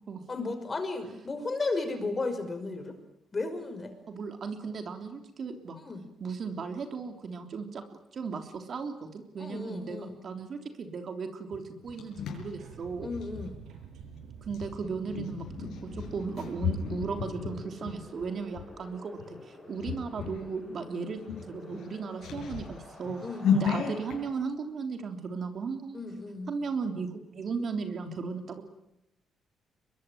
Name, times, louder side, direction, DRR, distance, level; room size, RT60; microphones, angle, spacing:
voice 1, 0.3-3.0 3.3-3.9 5.7-6.1 9.4-10.1 13.0-13.6 23.2-23.5 25.9-26.5, left 3 dB, 30° left, 8 dB, 5.7 m, -34 dB
voice 2, 4.1-5.8 6.2-7.8 8.1-10.0 10.2-13.1 14.4-21.2 21.5-23.2 23.5-26.0 26.5-28.6, right 5 dB, 55° right, 6 dB, 3.4 m, -36 dB
sound 1, 11.5-13.5 14.5-18.7 19.2-19.4 19.8-20.5 20.8-20.9 21.2-24.2, left 8 dB, 75° left, 7.0 m, -34 dB
sound 2, 12.4-17.6, right 7 dB, 80° right, 5.6 m, -48 dB
Wind, 14.1-24.3, left 1 dB, 10° left, 6.2 m, -49 dB
24.0 x 22.0 x 9.4 m, 0.89 s
cardioid pair, 90°, 0 cm